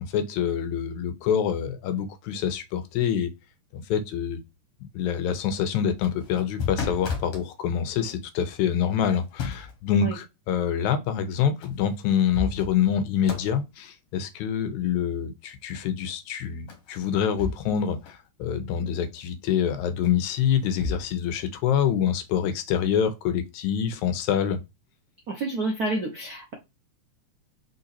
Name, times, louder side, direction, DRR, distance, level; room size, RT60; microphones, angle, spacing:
voice 1, 0.1-3.3 3.7-4.4 4.9-24.6, left 8 dB, 85° left, 2.1 m, -26 dB
sound 1, 6.0-7.5 9.0-9.8 11.6-11.7 12.1-13.0 13.2-13.6 16.7-17.8 18.1-18.2 20.0-21.0, left 5 dB, 60° left, 2.0 m, -33 dB
voice 2, 25.3-26.5, right 2 dB, 80° right, 0.8 m, -29 dB
4.5 x 3.9 x 2.6 m
omnidirectional pair, 3.3 m